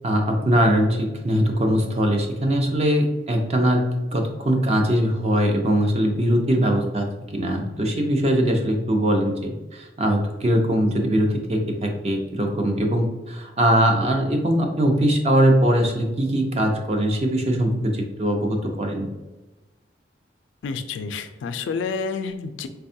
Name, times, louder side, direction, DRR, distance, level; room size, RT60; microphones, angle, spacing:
voice 1, 0.0-19.1, equal, 35° right, 3 dB, 0.5 m, -21 dB
voice 2, 20.6-22.7, left 5 dB, 85° left, 9 dB, 0.3 m, -29 dB
4.2 x 2.2 x 2.6 m, 1.1 s
head